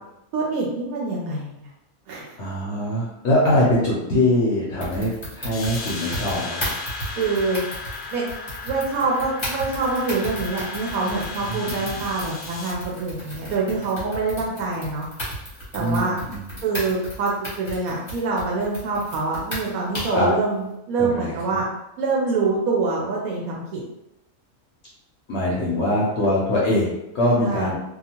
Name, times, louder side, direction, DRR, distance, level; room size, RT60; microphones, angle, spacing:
voice 1, 0.3-1.5 2.1-2.3 7.2-7.6 8.1-8.3 8.6-15.1 15.7-16.2 16.6-21.7 22.0-23.8 27.4-27.7, right 3 dB, 80° right, -3 dB, 1.0 m, -25 dB
voice 2, 2.4-6.7 11.4-12.0 15.8-16.4 20.1-20.3 21.0-21.6 25.3-26.9 27.1-27.8, left 1 dB, 60° left, -6 dB, 0.9 m, -23 dB
sound 1, 4.8-20.3, equal, 20° left, 0.9 m, -35 dB
sound 2, 5.5-12.7, left 4 dB, 85° left, 1.1 m, -35 dB
2.7 x 2.3 x 2.8 m, 0.89 s
omnidirectional pair, 1.5 m